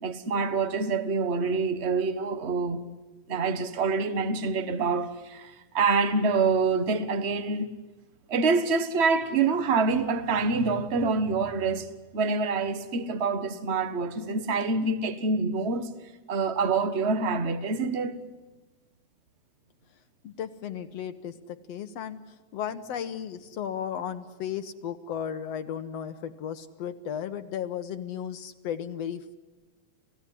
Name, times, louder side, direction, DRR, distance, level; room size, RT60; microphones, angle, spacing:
voice 1, 0.0-2.8 3.3-7.7 8.3-15.9 16.3-18.2, right 4 dB, 45° right, 0.8 m, -26 dB
voice 2, 20.2-22.2 22.5-29.4, left 9 dB, 65° left, 1.9 m, -35 dB
28.5 x 16.5 x 10.0 m
omnidirectional pair, 3.4 m